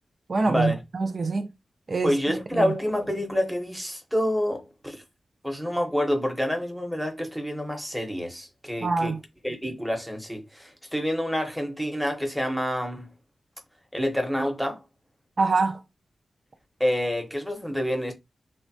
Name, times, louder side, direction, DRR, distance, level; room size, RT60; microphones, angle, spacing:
voice 1, 0.3-1.5 1.9-2.7 8.8-9.2 15.4-15.8, right 3 dB, 45° right, 0.3 m, -25 dB
voice 2, 2.0-5.0 5.4-9.1 9.4-13.1 13.9-14.8 16.8-18.1, equal, ahead, 0.8 m, -27 dB
3.2 x 2.1 x 2.6 m
wide cardioid pair, 110°, 0 cm